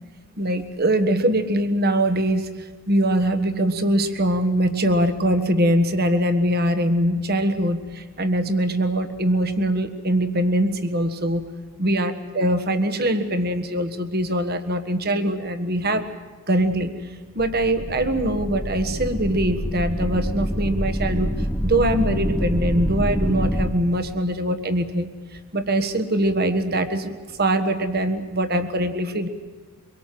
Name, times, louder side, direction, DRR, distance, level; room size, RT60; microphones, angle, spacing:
voice 1, 0.4-11.5 11.8-16.1 16.5-16.9 17.3-25.1 25.5-27.1 27.4-29.3, right 1 dB, 45° right, 9 dB, 1.5 m, -22 dB
sound 1, 17.4-23.7, equal, 10° left, 1.1 m, -26 dB
24.5 x 23.0 x 7.7 m, 1.4 s
head